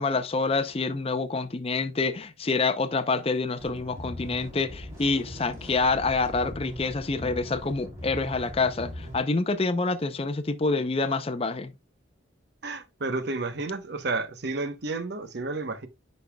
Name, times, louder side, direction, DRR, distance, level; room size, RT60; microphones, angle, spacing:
voice 1, 0.0-11.7, left 3 dB, 30° left, 0.5 m, -27 dB
sound 1, 3.6-9.2, equal, 15° right, 3.2 m, -40 dB
voice 2, 12.6-15.9, right 3 dB, 55° right, 0.9 m, -31 dB
9.9 x 5.3 x 2.2 m
head